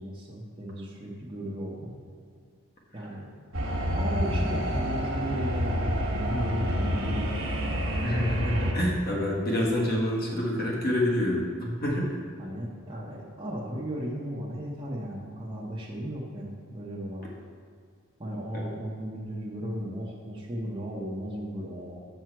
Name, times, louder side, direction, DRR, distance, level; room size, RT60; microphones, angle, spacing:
voice 1, 0.0-1.9 2.9-3.3 3.9-7.3 12.4-17.3 18.2-22.0, equal, 20° right, -6 dB, 0.8 m, -35 dB
sound 1, 3.5-8.7, equal, 60° right, 1.1 m, -28 dB
voice 2, 8.0-12.1 18.5-18.7, left 1 dB, 45° left, -3 dB, 1.5 m, -27 dB
7.0 x 6.1 x 4.6 m, 2.1 s
head